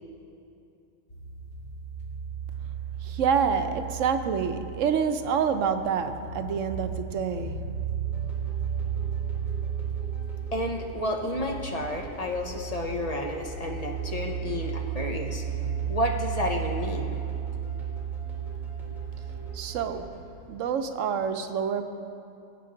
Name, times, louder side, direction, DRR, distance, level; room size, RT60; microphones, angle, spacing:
sound 1, 1.1-19.5, right 8 dB, 65° left, 2.3 m, -34 dB
voice 1, 3.0-7.6 19.5-20.1 20.5-21.8, right 6 dB, 85° right, 8 dB, 1.0 m, -27 dB
sound 2, 8.0-20.2, right 2 dB, ahead, 2.9 m, -45 dB
voice 2, 10.5-15.4 15.9-17.2, left 1 dB, 35° left, 2 dB, 0.9 m, -31 dB
19.5 x 8.5 x 3.8 m, 2.6 s
omnidirectional pair, 1.3 m